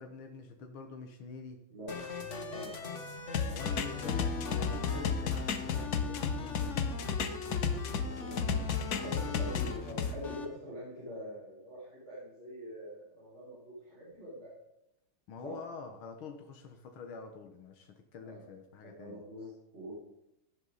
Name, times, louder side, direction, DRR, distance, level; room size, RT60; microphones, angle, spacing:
voice 1, 0.0-1.6 3.4-6.9 8.9-9.2 15.3-19.2, left 5 dB, 85° left, 4 dB, 2.0 m, -46 dB
voice 2, 1.7-2.0 2.5-2.7 7.9-14.5 15.4-15.6 18.2-18.5 19.0-19.9, equal, 80° right, -8 dB, 5.5 m, -45 dB
sound 1, 1.9-10.4, left 4 dB, 40° left, 1.6 m, -40 dB
sound 2, 3.3-8.1 8.4-10.1, left 7 dB, 60° left, 1.3 m, -32 dB
17.5 x 11.0 x 4.1 m, 0.87 s
omnidirectional pair, 2.2 m